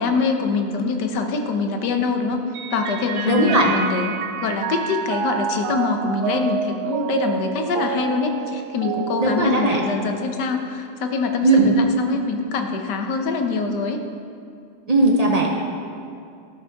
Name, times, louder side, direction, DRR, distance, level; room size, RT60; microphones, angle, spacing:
voice 1, 0.0-2.4 2.7-4.1 4.4-14.0, left 4 dB, 60° left, 4 dB, 1.4 m, -24 dB
Mallet percussion, 2.5-10.3, right 8 dB, 85° right, 0.9 m, -29 dB
voice 2, 3.3-3.7 9.2-9.8 11.4-11.8 14.9-15.5, right 2 dB, 65° right, -1 dB, 0.3 m, -17 dB
13.5 x 12.0 x 3.5 m, 2.4 s
omnidirectional pair, 2.4 m